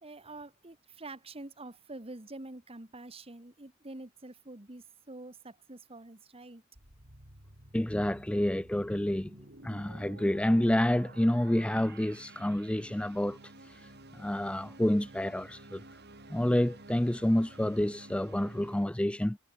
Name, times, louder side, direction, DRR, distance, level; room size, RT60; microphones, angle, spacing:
voice 1, 0.0-6.6, right 2 dB, 25° right, 1.6 m, -46 dB
sound 1, 6.7-18.9, right 2 dB, 50° right, 6.9 m, -52 dB
voice 2, 7.7-9.3 9.6-13.4 13.7-13.8 14.1-15.8 16.3-19.4, left 1 dB, 5° left, 0.4 m, -28 dB
head